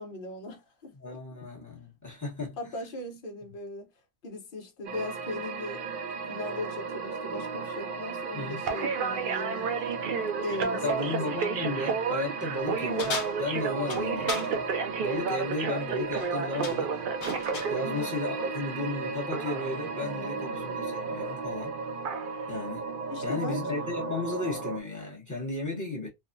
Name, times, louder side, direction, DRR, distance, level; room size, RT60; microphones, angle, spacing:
voice 1, 0.0-1.2 2.6-3.9 4.2-5.8 6.3-11.2 17.8-18.1 18.4-18.5 20.0-20.7 23.1-23.9, left 2 dB, 50° left, 0.9 m, -39 dB
voice 2, 1.0-2.6 8.3-8.6 10.8-14.6 15.0-16.9 17.7-21.7 22.5-22.9 23.2-26.1, left 2 dB, 15° left, 0.9 m, -34 dB
sound 1, 4.8-24.8, right 5 dB, 60° right, 0.6 m, -32 dB
sound 2, 13.0-14.5 16.0-16.3 16.6-17.8, left 4 dB, 70° left, 1.1 m, -36 dB
3.3 x 2.1 x 2.5 m
omnidirectional pair, 1.2 m